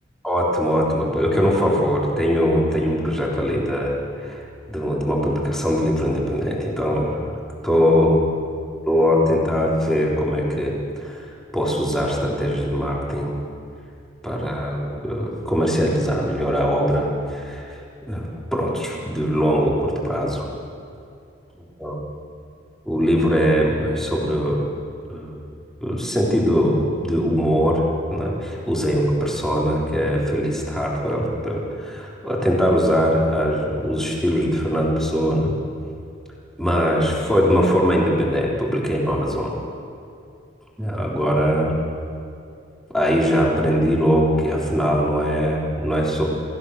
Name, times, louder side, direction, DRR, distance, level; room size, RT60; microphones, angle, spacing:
voice 1, 0.2-4.0 4.2-4.4 4.7-7.3 7.6-8.2 8.9-11.3 11.5-13.3 14.2-17.8 18.1-20.5 21.8-21.9 22.9-24.6 25.1-25.3 25.8-27.8 28.1-35.5 36.6-39.5 40.8-41.7 42.9-46.2, equal, 5° left, -4 dB, 3.6 m, -21 dB
27.0 x 16.0 x 6.6 m, 2.5 s
head